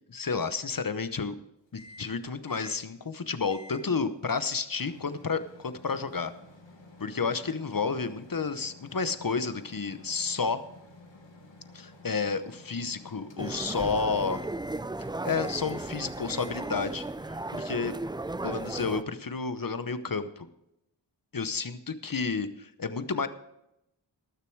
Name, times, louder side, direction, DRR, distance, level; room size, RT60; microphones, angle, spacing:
voice 1, 0.1-1.4 1.7-6.3 7.0-10.6 11.7-14.4 15.2-17.1 17.5-17.9 18.4-20.5 21.3-23.3, left 5 dB, 50° left, 12 dB, 0.9 m, -31 dB
Microwave oven, 1.8-2.2 2.5-2.8 3.5-3.9 4.3-13.9 14.3-14.9 15.3-15.9 16.3-16.9, left 2 dB, 75° left, 1.7 m, -52 dB
sound 1, 13.4-19.0, right 2 dB, 10° right, 0.4 m, -35 dB
19.0 x 6.8 x 4.6 m, 0.84 s
wide cardioid pair, 45°, 44 cm